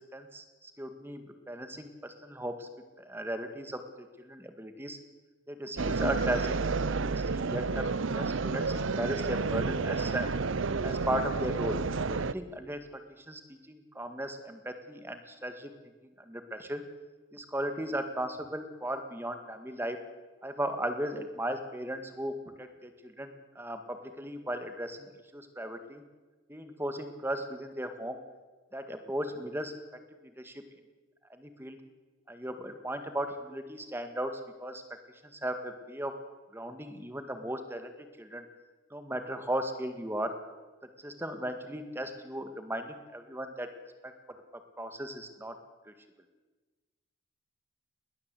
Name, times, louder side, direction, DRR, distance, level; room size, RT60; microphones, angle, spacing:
voice 1, 0.0-2.7 3.1-3.8 4.2-5.0 5.5-6.5 7.1-7.9 8.2-10.3 10.8-11.8 12.1-12.9 13.2-15.7 16.2-16.8 17.3-20.0 20.4-26.0 26.5-28.2 28.7-29.8 30.4-30.5 31.4-31.8 32.3-34.8 35.3-36.2 36.5-37.9 38.2-38.4 38.9-40.4 41.0-43.7 44.0-44.1 44.8-45.6 45.9-46.0, right 1 dB, 10° right, 8 dB, 1.9 m, -36 dB
sound 1, 5.8-12.3, right 4 dB, 75° right, 0.7 m, -30 dB
21.0 x 19.0 x 8.3 m, 1.2 s
head